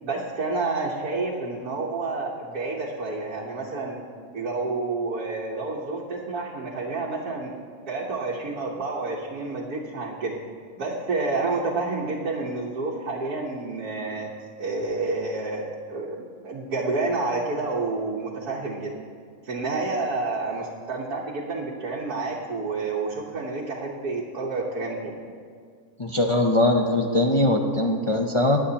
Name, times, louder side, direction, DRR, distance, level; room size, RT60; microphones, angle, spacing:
voice 1, 0.0-4.0 4.3-7.5 7.9-10.3 10.8-14.3 14.6-18.9 19.4-25.2, right 3 dB, 85° right, -3 dB, 1.6 m, -29 dB
voice 2, 26.0-28.6, left 1 dB, 45° left, 1 dB, 0.4 m, -21 dB
22.5 x 8.5 x 2.9 m, 2.1 s
omnidirectional pair, 1.6 m